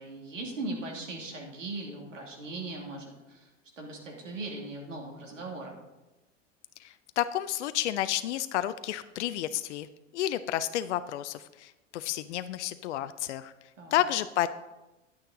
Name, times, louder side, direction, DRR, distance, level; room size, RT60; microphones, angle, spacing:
voice 1, 0.0-3.5 3.8-5.7 13.8-14.0, right 2 dB, 80° right, -1 dB, 2.5 m, -39 dB
voice 2, 6.8-9.9 10.1-13.5 13.9-14.5, left 12 dB, 65° left, 13 dB, 0.5 m, -31 dB
10.0 x 8.9 x 3.8 m, 1.0 s
figure-of-eight pair, 85°, 37 cm